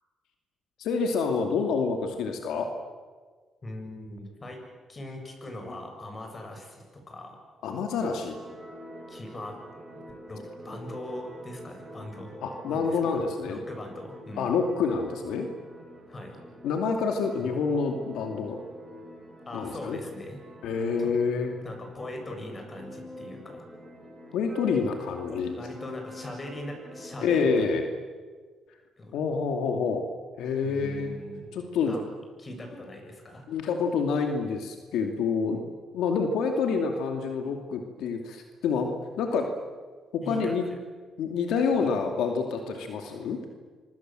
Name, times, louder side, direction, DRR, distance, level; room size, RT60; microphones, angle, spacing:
voice 1, 0.8-2.7 7.6-8.4 12.4-13.6 14.4-15.5 16.6-18.6 19.5-20.0 20.6-21.6 24.3-25.5 27.2-27.8 29.1-30.0 30.4-31.2 31.5-31.9 33.5-35.6 35.9-38.9 39.2-39.5 40.1-40.6 41.2-43.4, left 5 dB, 85° left, 4 dB, 2.6 m, -27 dB
voice 2, 3.6-4.6 4.9-7.4 9.1-9.7 10.3-12.3 12.7-14.6 16.1-16.4 17.4-17.5 19.5-20.4 21.0-21.2 21.6-23.7 25.3-27.7 29.0-29.2 30.6-31.6 31.8-32.0 32.4-33.5 35.5-35.8 40.2-40.8 41.8-41.9, left 1 dB, 30° left, 4 dB, 7.6 m, -41 dB
sound 1, 8.2-27.6, equal, 15° right, 7.7 m, -46 dB
27.0 x 24.5 x 7.7 m, 1.5 s
cardioid pair, 90°, 0 cm